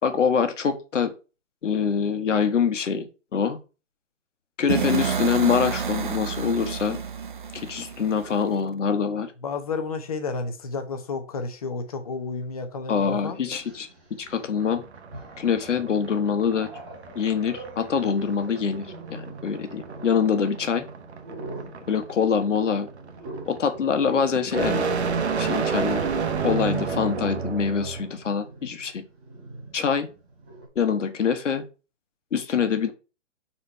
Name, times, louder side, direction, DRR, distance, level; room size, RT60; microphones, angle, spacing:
voice 1, 0.0-1.1 1.6-3.6 4.6-7.0 7.5-9.3 12.9-13.9 14.2-14.8 15.4-16.7 17.1-20.9 21.9-22.9 23.5-26.0 26.4-29.0 29.7-30.1 30.7-31.6 32.3-32.9, left 6 dB, 70° left, 8 dB, 1.4 m, -25 dB
sound 1, 4.7-8.6, right 6 dB, 40° right, 0.5 m, -29 dB
voice 2, 9.4-13.4, left 4 dB, 30° left, 6 dB, 0.9 m, -31 dB
Growling, 12.4-12.5 13.5-14.5 15.0-15.6 16.1-30.7, right 2 dB, 10° right, 0.8 m, -42 dB
sound 2, 14.6-28.1, right 6 dB, 60° right, 1.1 m, -31 dB
4.5 x 4.3 x 5.5 m, 0.32 s
hypercardioid pair, 175°, 38 cm